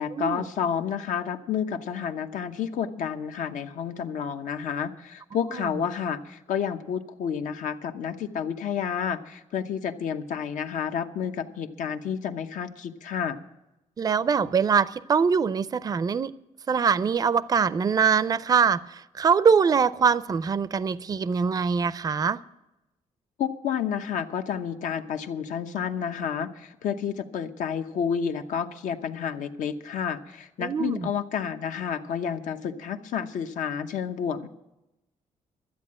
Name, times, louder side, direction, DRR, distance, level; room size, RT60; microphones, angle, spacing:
voice 1, 0.0-13.4 23.4-34.5, left 7 dB, 75° left, 7 dB, 0.9 m, -30 dB
voice 2, 14.0-16.3 16.7-22.4 30.6-31.1, right 6 dB, 30° right, 16 dB, 0.4 m, -23 dB
13.0 x 8.6 x 8.7 m, 0.92 s
cardioid pair, 120°, 13 cm